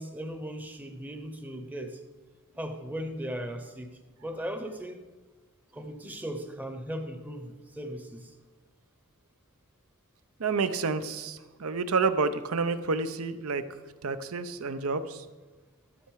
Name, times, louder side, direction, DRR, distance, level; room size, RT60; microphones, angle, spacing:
voice 1, 0.0-2.0 2.6-5.0 5.7-8.3, equal, 10° right, 7 dB, 0.7 m, -38 dB
voice 2, 10.4-13.6 14.0-15.2, right 4 dB, 85° right, 11 dB, 0.7 m, -29 dB
12.5 x 6.7 x 4.7 m, 1.2 s
head